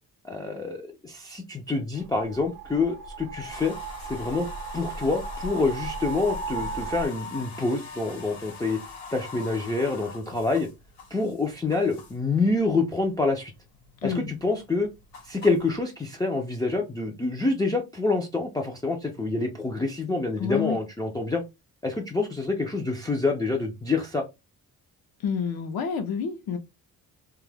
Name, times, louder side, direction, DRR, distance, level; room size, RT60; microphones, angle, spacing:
voice 1, 0.2-3.7 4.1-4.5 4.7-8.8 9.1-10.7 11.1-13.5 14.0-14.9 15.2-21.4 21.8-24.2, left 3 dB, 10° left, 0.3 m, -27 dB
sound 1, 2.0-7.1, right 5 dB, 65° right, 0.7 m, -36 dB
sound 2, 3.5-12.3 12.7-13.4 13.7-15.8, left 4 dB, 85° left, 1.0 m, -42 dB
voice 2, 14.0-14.3 20.4-20.8 25.2-26.6, left 6 dB, 70° left, 0.6 m, -28 dB
2.3 x 2.0 x 3.2 m
cardioid pair, 125°, 38 cm